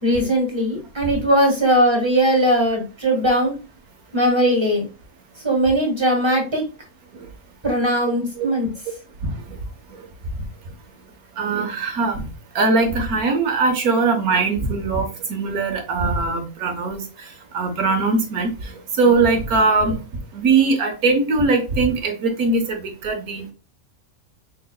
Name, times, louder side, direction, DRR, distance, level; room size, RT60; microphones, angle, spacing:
voice 1, 0.0-3.5 4.1-4.9 5.4-6.6 7.6-8.7, equal, 20° right, 1 dB, 1.6 m, -19 dB
voice 2, 9.2-9.6 9.9-10.1 11.4-12.2 12.5-20.0 20.3-23.5, right 3 dB, 80° right, 4 dB, 1.6 m, -21 dB
5.4 x 3.9 x 2.2 m, 0.32 s
omnidirectional pair, 1.5 m